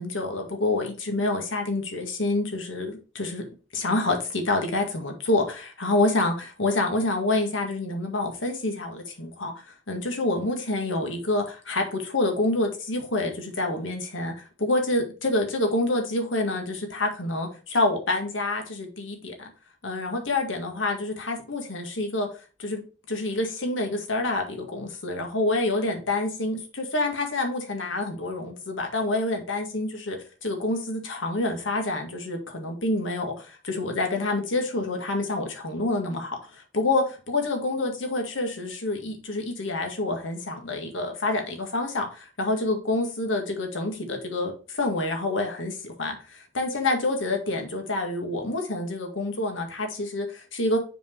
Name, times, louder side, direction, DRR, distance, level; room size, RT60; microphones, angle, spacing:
voice 1, 0.0-3.4 3.7-14.3 14.6-19.5 19.8-22.3 22.6-50.8, left 2 dB, 90° left, 3 dB, 1.9 m, -27 dB
7.0 x 4.5 x 4.5 m, 0.35 s
head